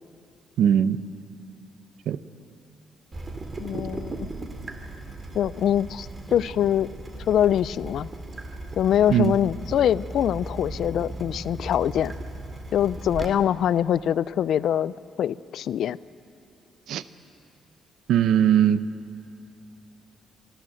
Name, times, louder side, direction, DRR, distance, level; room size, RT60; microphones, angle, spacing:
voice 1, 0.6-1.0 2.1-2.2 9.1-9.3 16.9-17.0 18.1-18.8, right 9 dB, 80° right, 14 dB, 0.7 m, -19 dB
Water tap faucet / Drip, 3.1-13.3, right 2 dB, 30° right, 2.3 m, -37 dB
voice 2, 3.6-4.3 5.3-6.9 7.3-8.1 8.8-12.1 12.7-14.9 15.2-16.0, left 10 dB, 70° left, 18 dB, 0.4 m, -24 dB
27.5 x 13.0 x 7.7 m, 2.7 s
cardioid pair, 90°, 0 cm